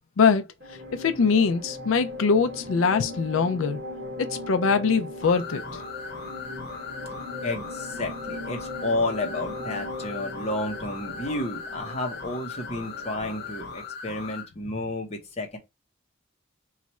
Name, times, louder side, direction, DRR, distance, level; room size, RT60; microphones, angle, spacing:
voice 1, 0.2-0.5 1.0-3.8 4.5-5.6, left 5 dB, 90° left, 0.4 m, -22 dB
sound 1, 0.6-13.9, left 1 dB, 50° right, 1.3 m, -39 dB
sound 2, 5.2-14.5, left 5 dB, 55° left, 1.1 m, -39 dB
voice 2, 7.4-15.6, left 2 dB, 30° left, 0.8 m, -31 dB
3.0 x 2.4 x 4.1 m
head